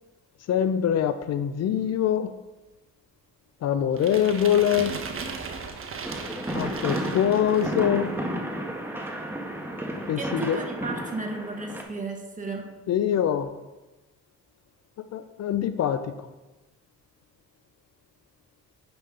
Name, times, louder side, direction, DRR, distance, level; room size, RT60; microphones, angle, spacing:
voice 1, 0.5-2.3 3.6-5.0 6.5-8.1 10.1-10.6 12.9-13.5 15.1-16.3, left 9 dB, 55° left, 11 dB, 0.6 m, -24 dB
sound 1, 4.0-8.0, right 5 dB, 45° right, 1.2 m, -37 dB
sound 2, 6.0-11.8, right 1 dB, 5° right, 1.4 m, -32 dB
voice 2, 10.2-12.7, right 3 dB, 25° right, 2 dB, 1.7 m, -34 dB
9.7 x 5.9 x 3.8 m, 1.1 s
cardioid pair, 90°, 30 cm